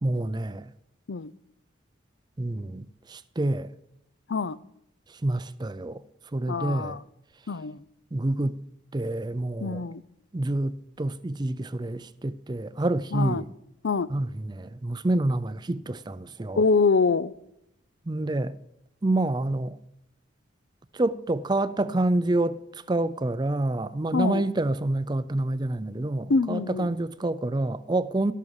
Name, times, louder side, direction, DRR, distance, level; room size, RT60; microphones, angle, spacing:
voice 1, 0.0-0.7 2.4-3.7 5.1-6.0 6.3-7.0 8.1-8.6 8.9-9.8 10.3-13.5 14.1-16.6 18.1-18.6 19.0-19.8 20.9-28.3, right 2 dB, 20° right, 0.4 m, -28 dB
voice 2, 6.5-7.0 7.5-7.8 9.6-10.0 13.1-13.4 13.8-14.1 16.6-17.3 24.1-24.4 26.3-26.9, left 4 dB, 60° left, 0.5 m, -25 dB
14.0 x 12.5 x 4.8 m
head